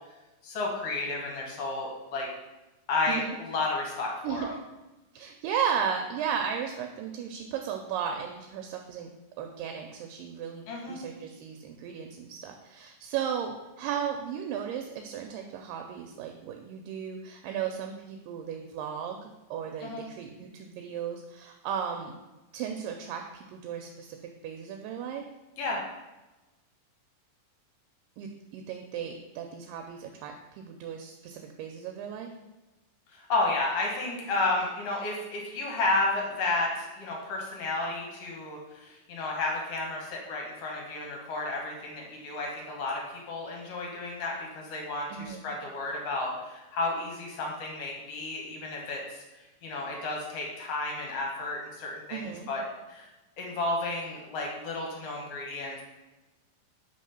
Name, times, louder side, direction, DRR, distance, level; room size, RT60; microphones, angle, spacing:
voice 1, 0.4-2.3 2.9-4.5 10.7-11.0 19.8-20.0 25.6-25.8 33.1-43.0 43.3-49.2 49.6-52.6 52.9-53.1 53.4-55.8, left 2 dB, 65° left, -1 dB, 1.6 m, -32 dB
voice 2, 5.1-9.1 9.4-22.1 22.5-24.2 24.4-25.2 28.2-32.3 45.1-45.4 52.1-52.5, right 8 dB, 80° right, 3 dB, 2.2 m, -35 dB
5.0 x 3.6 x 5.5 m, 1.1 s
omnidirectional pair, 4.0 m